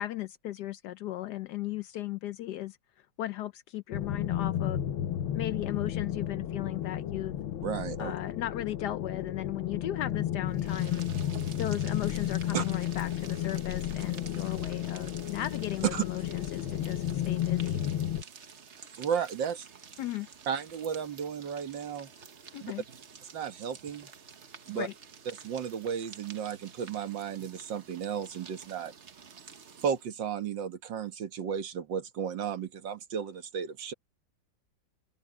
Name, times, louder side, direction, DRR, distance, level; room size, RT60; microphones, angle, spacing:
voice 1, 0.0-2.8 3.2-4.8 5.3-7.4 8.0-11.0 11.6-17.8 20.0-20.3 22.5-22.8 24.7-24.9, left 14 dB, 75° left, 1.0 m, -36 dB
sound 1, 3.9-18.2, left 11 dB, 90° left, 1.8 m, -33 dB
voice 2, 7.6-8.1 12.5-12.6 15.9-16.0 19.0-19.7 20.5-22.1 22.6-22.7 23.2-24.1 24.7-24.9 25.4-28.9 29.8-33.9, right 7 dB, 65° right, 2.1 m, -34 dB
sound 2, 10.5-30.1, right 6 dB, 40° right, 1.2 m, -50 dB
omnidirectional pair, 2.2 m